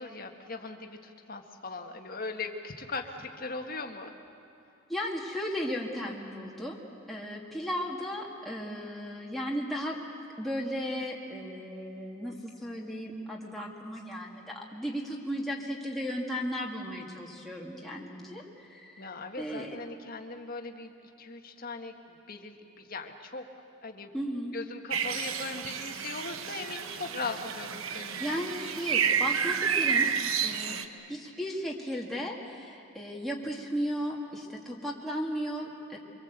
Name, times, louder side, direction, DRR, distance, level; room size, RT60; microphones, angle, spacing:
voice 1, 0.0-4.1 19.0-20.9 21.2-23.5 23.8-24.1 24.5-28.5 30.8-31.2, left 3 dB, 45° left, 4 dB, 1.7 m, -39 dB
voice 2, 4.9-6.8 7.1-10.0 10.4-19.1 19.4-19.8 24.1-24.6 28.2-30.8 31.1-36.0, equal, ahead, -3 dB, 2.3 m, -35 dB
sound 1, 24.9-30.9, right 7 dB, 80° right, 1.0 m, -30 dB
24.5 x 24.5 x 8.1 m, 2.6 s
head